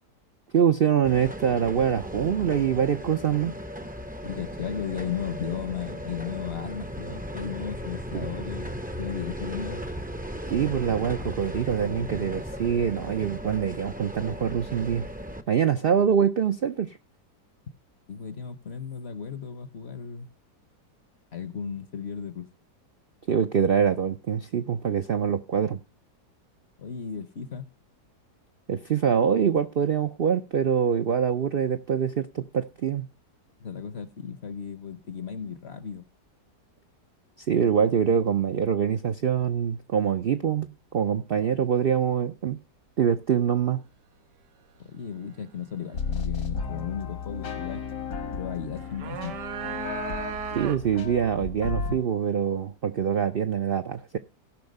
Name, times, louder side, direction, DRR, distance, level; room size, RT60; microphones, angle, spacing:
voice 1, 0.5-3.5 8.1-8.3 10.5-15.1 15.5-17.0 23.3-25.8 28.7-33.1 37.5-42.6 43.0-43.8 50.6-54.2, right 7 dB, 65° right, 0.5 m, -24 dB
sound 1, 1.0-15.4, equal, 10° right, 0.5 m, -36 dB
voice 2, 4.2-8.7 9.0-9.9 18.1-20.3 21.3-22.5 26.8-27.7 33.6-36.0 44.8-47.8 48.3-49.4, left 7 dB, 50° left, 0.9 m, -35 dB
sound 2, 45.9-52.0, left 5 dB, 75° left, 2.3 m, -34 dB
sound 3, 48.8-51.1, right 8 dB, 90° right, 1.5 m, -35 dB
16.5 x 5.8 x 5.3 m
omnidirectional pair, 1.8 m